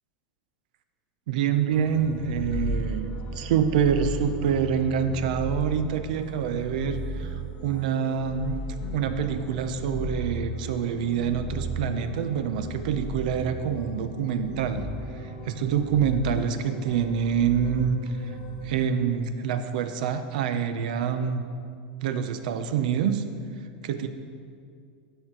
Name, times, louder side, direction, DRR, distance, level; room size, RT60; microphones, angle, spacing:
voice 1, 1.3-8.6 8.9-14.8 15.1-18.1 18.6-21.4 22.0-23.2 23.8-24.1, right 7 dB, 75° right, 10 dB, 0.6 m, -26 dB
sound 1, 1.7-18.9, equal, 50° left, 0.8 m, -35 dB
12.5 x 4.5 x 3.8 m, 2.3 s
supercardioid pair, 150°, 5 cm